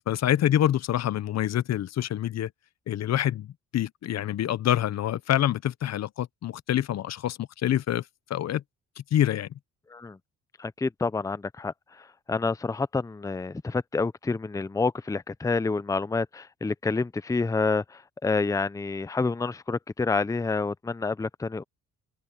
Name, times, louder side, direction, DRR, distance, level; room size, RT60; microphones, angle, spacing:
voice 1, 0.1-2.5 2.9-8.0 8.3-8.6 9.0-9.5, left 11 dB, 60° left, 0.8 m, -26 dB
voice 2, 10.6-21.6, left 4 dB, 10° left, 0.6 m, -28 dB
cardioid pair, 90°, 30 cm